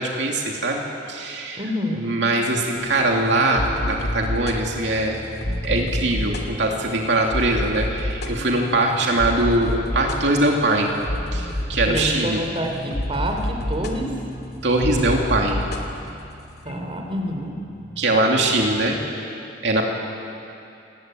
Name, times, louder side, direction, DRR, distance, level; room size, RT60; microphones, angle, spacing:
voice 1, 0.0-1.6 1.9-5.2 5.6-10.9 11.3-12.4 14.6-15.7 18.0-19.0 19.6-19.8, right 2 dB, 70° right, 0 dB, 2.8 m, -22 dB
voice 2, 1.6-2.0 11.9-14.1 16.6-17.5, equal, 30° right, 3 dB, 3.6 m, -27 dB
sound 1, 2.8-19.0, left 1 dB, 60° left, 2.7 m, -30 dB
28.5 x 20.0 x 9.2 m, 2.7 s
head